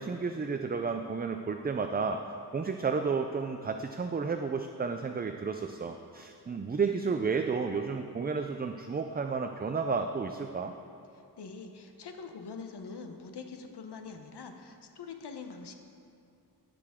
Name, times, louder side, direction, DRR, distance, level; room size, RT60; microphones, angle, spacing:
voice 1, 0.0-2.2 2.5-10.7, right 5 dB, 25° right, 6 dB, 0.3 m, -32 dB
voice 2, 11.1-15.7, left 5 dB, 80° left, 6 dB, 0.9 m, -44 dB
17.5 x 6.8 x 3.6 m, 2.6 s
wide cardioid pair, 110°, 40 cm